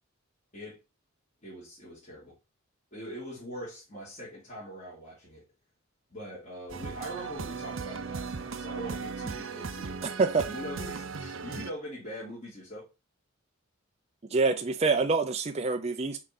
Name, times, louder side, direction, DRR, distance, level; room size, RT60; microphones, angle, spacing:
voice 1, 1.4-2.4 2.9-5.4 6.1-12.9, equal, 35° left, 3.3 m, -42 dB
sound 1, 6.7-11.7, right 5 dB, 65° right, 0.7 m, -37 dB
voice 2, 14.3-16.2, right 4 dB, 30° right, 0.5 m, -26 dB
6.4 x 4.8 x 4.1 m
head